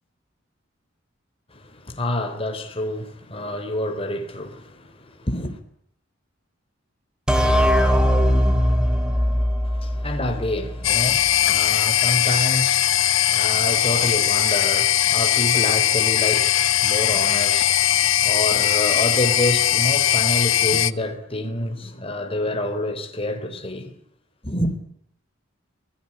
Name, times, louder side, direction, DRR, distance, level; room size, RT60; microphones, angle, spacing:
voice 1, 1.5-5.6 9.6-24.0 24.4-24.7, left 1 dB, 30° left, 3.7 m, -28 dB
sound 1, 7.3-10.8, equal, 5° right, 3.5 m, -20 dB
sound 2, 10.8-20.9, left 11 dB, 90° left, 1.1 m, -20 dB
27.0 x 18.0 x 10.0 m
head